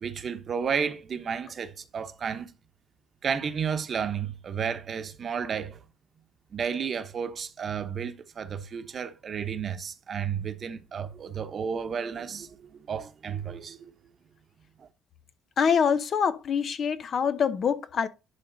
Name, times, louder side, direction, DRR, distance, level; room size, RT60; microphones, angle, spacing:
voice 1, 0.0-2.5 3.2-5.8 6.5-13.9 14.8-14.9, right 7 dB, 45° right, 1.0 m, -32 dB
voice 2, 15.6-18.1, left 7 dB, 50° left, 0.8 m, -25 dB
11.0 x 3.8 x 4.0 m
cardioid pair, 105°, 0 cm